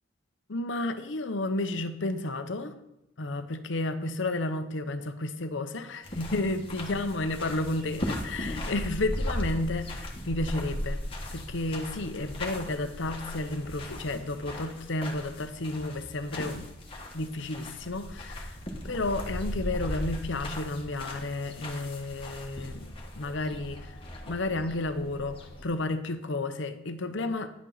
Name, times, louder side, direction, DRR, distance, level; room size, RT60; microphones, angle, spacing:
voice 1, 0.5-2.7 3.2-11.0 11.3-16.7 17.1-18.5 18.8-24.0 24.3-27.5, left 2 dB, 65° left, 9 dB, 0.9 m, -32 dB
sound 1, 6.0-25.6, left 1 dB, 25° left, 1.5 m, -38 dB
10.5 x 8.4 x 4.1 m, 0.86 s
head